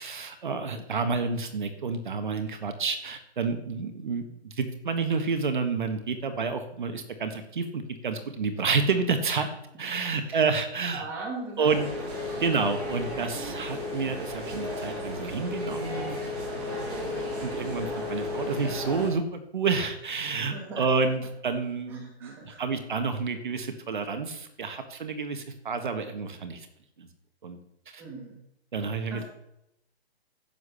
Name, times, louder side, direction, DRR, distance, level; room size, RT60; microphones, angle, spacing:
voice 1, 0.0-9.5 9.8-11.0 11.6-11.9 12.4-16.2 17.0-26.7 27.0-27.1 27.4-27.6 27.9-28.0 28.7-29.2, right 4 dB, 50° right, 8 dB, 1.6 m, -29 dB
voice 2, 10.9-11.7 12.3-12.6 20.5-20.8 21.9-22.7 28.0-28.4 29.1-29.2, right 3 dB, 5° right, -3 dB, 1.5 m, -39 dB
sound 1, 11.6-19.1, left 2 dB, 20° right, 4.0 m, -34 dB
11.0 x 8.1 x 6.9 m, 0.81 s
hypercardioid pair, 180°, 32 cm